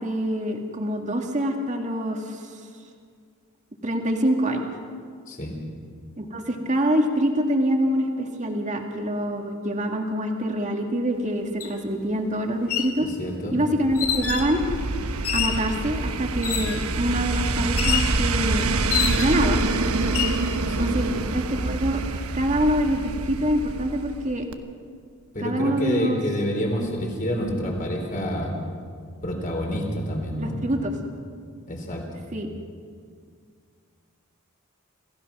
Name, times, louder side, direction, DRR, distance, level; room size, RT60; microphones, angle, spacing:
voice 1, 0.0-2.5 3.8-4.7 6.2-13.1 13.5-14.6 15.3-18.7 19.2-19.6 20.8-22.0 22.3-24.5 25.4-26.2 30.4-30.9 32.3-32.5, equal, 35° right, 3 dB, 2.0 m, -25 dB
sound 1, 11.6-11.7 12.5-13.0 14.0-14.5 15.2-15.7 16.4-16.9 17.8-18.1 18.9-19.5 20.0-20.4, left 9 dB, 75° left, 2.2 m, -27 dB
voice 2, 13.0-13.6 20.6-21.0 25.3-28.5 29.2-30.6 31.7-32.0, equal, 40° left, 1 dB, 4.0 m, -28 dB
sound 2, 13.9-24.3 24.5-24.6, right 2 dB, 75° right, 1.1 m, -26 dB
27.0 x 15.5 x 6.1 m, 2.1 s
head